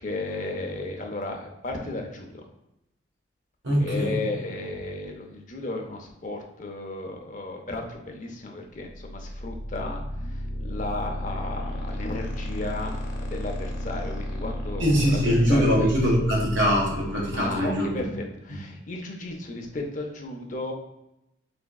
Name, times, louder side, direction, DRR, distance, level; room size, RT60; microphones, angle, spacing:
voice 1, 0.0-2.4 3.8-15.9 17.3-20.7, left 2 dB, 40° left, 2 dB, 0.5 m, -34 dB
voice 2, 3.6-4.2 14.8-17.9, equal, 75° right, -3 dB, 1.3 m, -22 dB
sound 1, 8.9-17.7, equal, 65° left, 0.8 m, -33 dB
4.9 x 3.4 x 2.3 m, 0.86 s
head